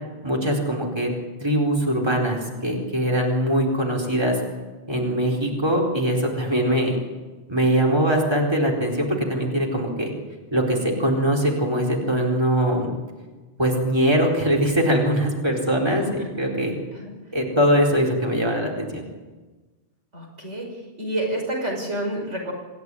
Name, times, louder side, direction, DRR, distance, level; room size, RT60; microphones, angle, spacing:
voice 1, 0.2-1.1 1.4-4.4 4.9-7.0 7.5-10.1 10.5-12.9 13.6-16.8 17.3-19.0, equal, 20° right, -1 dB, 4.3 m, -22 dB
voice 2, 20.1-20.7 21.0-22.5, right 1 dB, 85° right, 0 dB, 5.9 m, -28 dB
26.5 x 16.0 x 9.8 m, 1.3 s
omnidirectional pair, 1.2 m